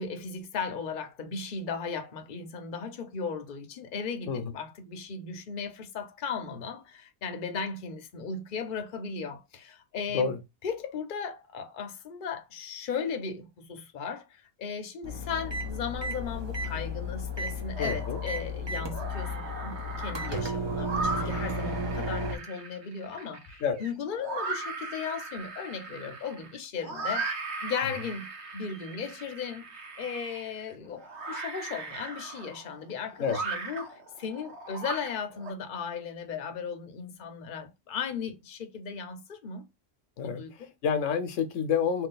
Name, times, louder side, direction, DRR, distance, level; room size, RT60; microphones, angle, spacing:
voice 1, 0.0-10.3 10.6-39.7 40.2-40.7, left 6 dB, 50° left, 0.8 m, -36 dB
sound 1, 15.0-22.4, left 1 dB, 30° right, 0.5 m, -33 dB
sound 2, 17.7-18.4 18.8-35.5, right 3 dB, 65° right, 1.1 m, -38 dB
voice 2, 17.8-18.2 23.6-23.8 33.2-33.4 40.2-42.1, left 6 dB, 90° left, 1.1 m, -29 dB
3.1 x 2.7 x 3.9 m
omnidirectional pair, 1.3 m